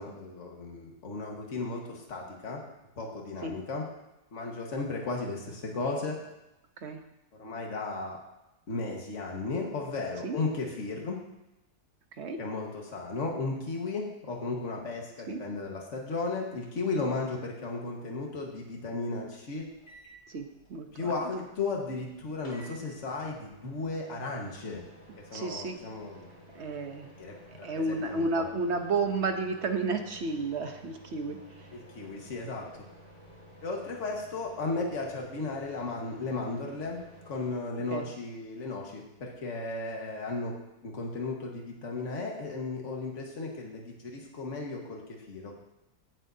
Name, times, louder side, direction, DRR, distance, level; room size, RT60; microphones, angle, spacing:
voice 1, 0.0-2.6 3.0-3.8 4.3-6.2 7.3-8.2 8.7-11.2 12.4-19.7 20.9-24.8 25.3-26.3 27.2-28.5 31.7-32.8 33.6-40.5 40.8-45.5, left 3 dB, 50° left, 0 dB, 1.8 m, -35 dB
sound 1, 19.5-37.6, equal, 30° left, 2.1 m, -53 dB
voice 2, 20.3-21.1 25.3-25.8 26.5-27.1 27.6-31.7 37.9-38.1, right 3 dB, 50° right, 5 dB, 1.0 m, -32 dB
17.0 x 7.4 x 2.8 m, 0.94 s
omnidirectional pair, 1.7 m